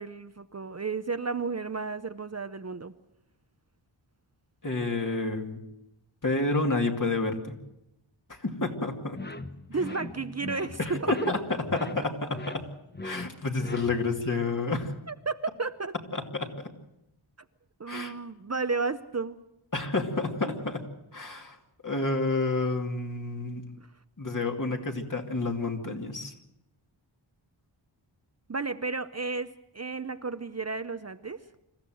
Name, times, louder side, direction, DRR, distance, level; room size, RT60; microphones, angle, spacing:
voice 1, 0.0-2.9 9.7-11.1 15.1-15.9 17.8-19.4 20.5-20.6 28.5-31.4, right 4 dB, 35° right, 10 dB, 0.7 m, -33 dB
voice 2, 4.6-5.6 6.2-7.6 8.3-9.2 10.8-12.7 13.0-14.9 16.1-16.7 17.9-18.1 19.7-20.9 21.1-21.6 21.8-23.6 24.2-26.3, left 3 dB, 40° left, 3 dB, 2.6 m, -29 dB
sound 1, 9.1-14.3, left 2 dB, 20° left, 1.0 m, -41 dB
26.0 x 14.5 x 7.8 m, 0.87 s
wide cardioid pair, 90°, 47 cm